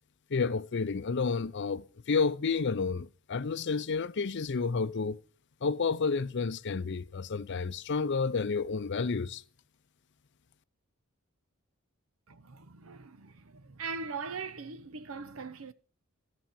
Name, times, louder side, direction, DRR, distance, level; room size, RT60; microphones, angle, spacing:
voice 1, 0.3-5.2 5.6-9.4, left 4 dB, 55° left, 0.6 m, -30 dB
voice 2, 12.3-15.7, right 4 dB, 70° right, 0.8 m, -41 dB
14.5 x 6.2 x 7.1 m
head